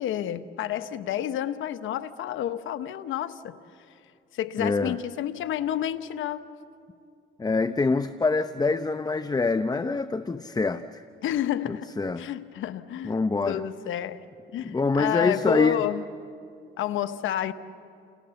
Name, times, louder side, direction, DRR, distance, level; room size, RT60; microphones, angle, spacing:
voice 1, 0.0-3.6 4.3-6.5 11.2-13.2 13.4-14.2 14.5-16.0 16.8-17.5, left 11 dB, 80° left, 1.1 m, -30 dB
voice 2, 4.6-5.0 7.4-11.0 11.7-12.2 13.0-13.6 14.6-15.8, left 3 dB, 20° left, 0.7 m, -25 dB
29.5 x 28.5 x 7.1 m
cardioid pair, 90°, 20 cm